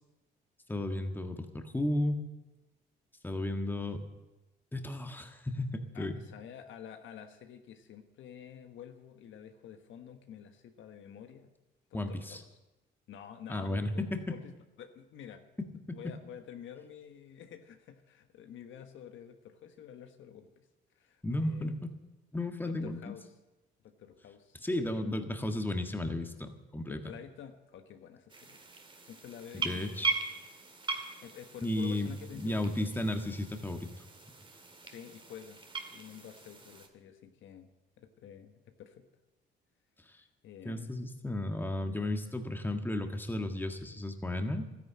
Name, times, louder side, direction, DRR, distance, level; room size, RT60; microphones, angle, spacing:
voice 1, 0.7-2.2 3.2-4.0 4.7-6.2 11.9-12.4 13.5-14.3 15.6-16.0 21.2-21.9 22.3-23.1 24.6-27.0 29.5-30.2 31.6-33.9 40.6-44.6, left 1 dB, 10° left, 6 dB, 1.6 m, -34 dB
voice 2, 5.9-11.5 11.9-12.5 13.1-14.5 14.8-15.4 15.9-20.6 20.9-21.8 22.6-23.3 23.8-25.2 26.9-28.7 29.0-30.1 31.2-33.2 34.8-35.6 35.9-37.7 38.0-39.1 40.4-40.9, left 9 dB, 75° left, 7 dB, 1.3 m, -49 dB
sound 1, 28.3-36.9, right 4 dB, 25° right, 1.9 m, -40 dB
13.0 x 10.5 x 8.6 m, 1.0 s
cardioid pair, 90°, 20 cm